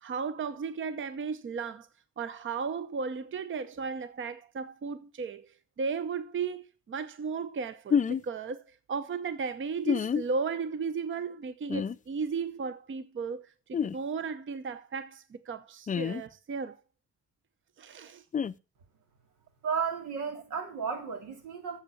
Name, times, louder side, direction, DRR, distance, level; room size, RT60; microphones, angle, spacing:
voice 1, 0.0-1.9 2.2-13.4 13.7-16.8 17.8-18.2, right 5 dB, 40° right, 0.8 m, -35 dB
sound 1, 7.9-8.2 9.8-10.2 11.7-11.9 13.7-14.0 15.9-16.2 18.3-18.5, left 7 dB, 25° left, 0.4 m, -27 dB
voice 2, 19.6-21.8, right 6 dB, 90° right, 2.9 m, -33 dB
8.1 x 7.1 x 6.9 m
cardioid pair, 90°, 30 cm